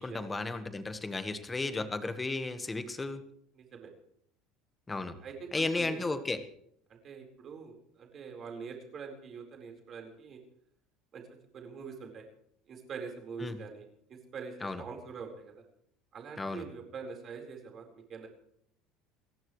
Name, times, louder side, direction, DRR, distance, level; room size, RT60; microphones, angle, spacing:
voice 1, 0.0-3.2 4.9-5.1 5.5-6.4 13.4-13.6 14.6-14.8 16.4-16.6, left 3 dB, 10° left, 9 dB, 1.4 m, -34 dB
voice 2, 3.5-3.9 5.2-6.2 6.9-10.4 11.1-11.2 11.5-12.3 12.7-13.8 14.1-15.5 16.1-18.3, right 5 dB, 30° right, 2 dB, 4.3 m, -44 dB
29.5 x 15.5 x 3.2 m, 0.68 s
cardioid pair, 170°, 0 cm